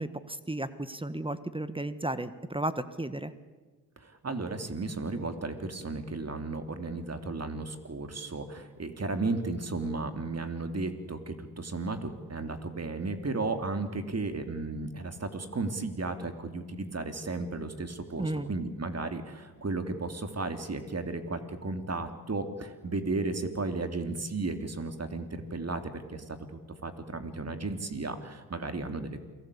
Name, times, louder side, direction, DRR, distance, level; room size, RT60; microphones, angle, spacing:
voice 1, 0.0-3.3 18.2-18.5, right 1 dB, 15° right, 13 dB, 1.6 m, -34 dB
voice 2, 4.0-29.2, right 3 dB, 40° right, 8 dB, 3.3 m, -34 dB
28.5 x 18.5 x 8.6 m, 1.4 s
supercardioid pair, 45°, 38 cm